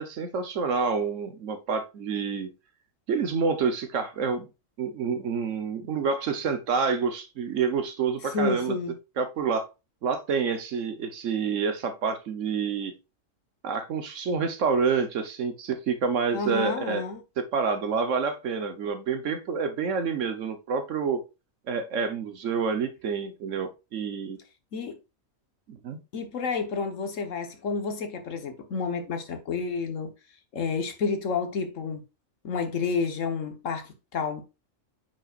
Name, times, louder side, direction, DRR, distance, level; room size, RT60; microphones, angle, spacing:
voice 1, 0.0-2.5 3.1-4.5 4.8-8.8 9.2-9.7 10.0-12.9 13.6-17.0 17.5-21.2 21.7-24.4 25.7-26.0, right 5 dB, 70° right, 1.3 m, -28 dB
voice 2, 8.3-8.9 16.3-17.2 24.7-25.0 26.1-30.1 30.5-32.0 32.4-34.4, left 4 dB, 70° left, 1.5 m, -30 dB
8.9 x 5.5 x 2.4 m
omnidirectional pair, 1.4 m